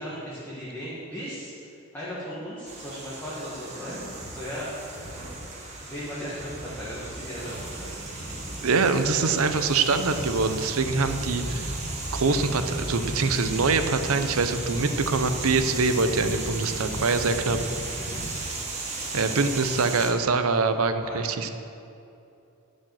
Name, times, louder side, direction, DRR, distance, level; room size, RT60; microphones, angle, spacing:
voice 1, 0.0-4.9 5.8-8.1 18.0-18.2 21.0-21.5, equal, 10° left, -9 dB, 1.6 m, -37 dB
sound 1, 2.7-20.1, right 3 dB, 30° right, 1.3 m, -36 dB
sound 2, 7.4-18.4, equal, 30° left, 0.9 m, -36 dB
voice 2, 8.6-11.6 12.1-17.6 19.1-21.5, right 4 dB, 75° right, 9 dB, 0.7 m, -24 dB
11.0 x 5.1 x 7.6 m, 2.7 s
head